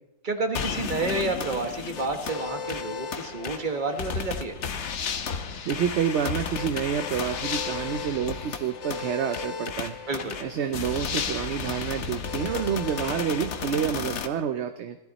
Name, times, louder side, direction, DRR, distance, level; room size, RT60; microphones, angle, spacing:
voice 1, 0.2-4.6 10.1-10.4, right 3 dB, 40° right, 6 dB, 1.5 m, -30 dB
sound 1, 0.5-14.3, left 6 dB, 65° left, 1.1 m, -33 dB
voice 2, 5.7-9.9 10.4-15.0, right 8 dB, 65° right, 9 dB, 0.9 m, -28 dB
17.0 x 13.0 x 4.1 m, 0.99 s
omnidirectional pair, 1.4 m